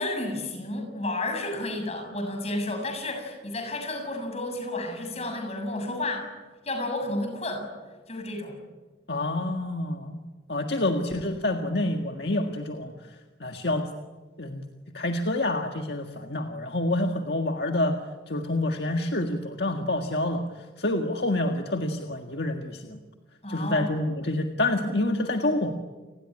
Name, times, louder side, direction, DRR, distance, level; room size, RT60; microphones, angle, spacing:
voice 1, 0.0-6.3 6.6-7.6 8.1-8.6 23.4-23.9, left 2 dB, 35° left, 4 dB, 7.3 m, -31 dB
voice 2, 9.1-10.2 10.5-12.9 13.4-13.8 14.4-14.6 14.9-18.0 18.3-20.4 20.8-23.0 23.5-25.7, left 1 dB, 60° left, 4 dB, 1.8 m, -27 dB
30.0 x 20.0 x 10.0 m, 1.3 s
head